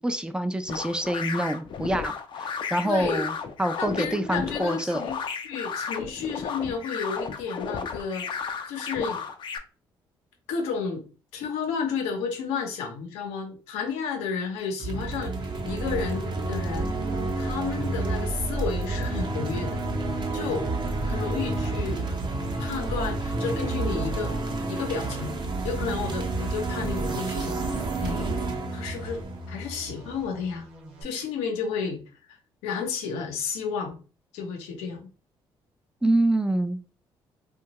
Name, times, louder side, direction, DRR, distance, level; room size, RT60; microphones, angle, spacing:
voice 1, 0.0-3.3 3.6-5.0 36.0-36.8, right 1 dB, 10° right, 9 dB, 0.4 m, -26 dB
sound 1, 0.7-9.6, left 6 dB, 50° left, 0.5 m, -34 dB
voice 2, 2.8-3.2 3.8-8.3 8.7-9.2 10.5-11.0 11.3-17.0 17.4-19.8 20.3-20.7 21.0-22.2 22.6-24.3 24.7-25.3 25.6-28.3 28.7-29.2 29.5-30.7 31.0-32.0 32.3-32.4 32.6-34.0 34.3-35.1, left 5 dB, 85° left, 3 dB, 0.7 m, -32 dB
sound 2, 14.8-30.2, right 2 dB, 45° right, 0.8 m, -30 dB
sound 3, 15.7-31.0, equal, 80° right, 0.9 m, -43 dB
2.7 x 2.3 x 2.9 m, 0.36 s
supercardioid pair, 65°, 11 cm